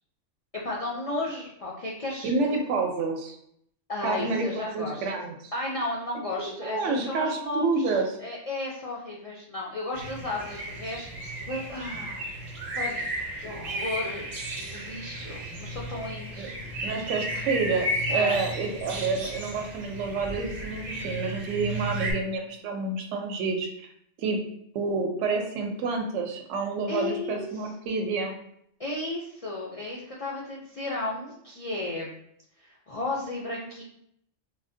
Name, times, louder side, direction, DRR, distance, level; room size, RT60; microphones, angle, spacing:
voice 1, 0.5-2.3 3.9-5.1 5.5-12.3 12.7-13.0 13.4-14.3 14.6-16.5 16.9-17.0 18.1-18.4 26.9-27.5 28.8-32.2 32.6-33.8, left 2 dB, 70° left, -4 dB, 0.3 m, -34 dB
voice 2, 2.2-3.4 4.0-5.5 6.4-8.2 16.4-16.5 16.8-23.7 24.2-24.4 24.7-28.3, right 4 dB, 70° right, 3 dB, 0.9 m, -29 dB
sound 1, 9.9-22.1, right 1 dB, 45° right, 0.6 m, -34 dB
3.8 x 2.1 x 2.6 m, 0.71 s
omnidirectional pair, 1.3 m